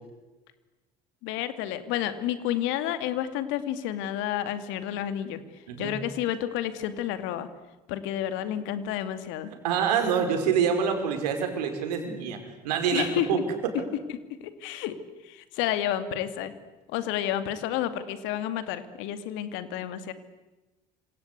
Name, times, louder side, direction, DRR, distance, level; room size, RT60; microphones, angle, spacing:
voice 1, 1.2-5.4 5.8-7.5 7.9-9.5 12.9-13.4 14.6-15.0 15.2-16.5 16.9-20.1, left 11 dB, 70° left, 11 dB, 2.6 m, -30 dB
voice 2, 9.6-12.4 12.6-13.4, right 7 dB, 80° right, 5 dB, 5.3 m, -26 dB
27.5 x 26.5 x 8.3 m, 1.1 s
hypercardioid pair, 60°, 20 cm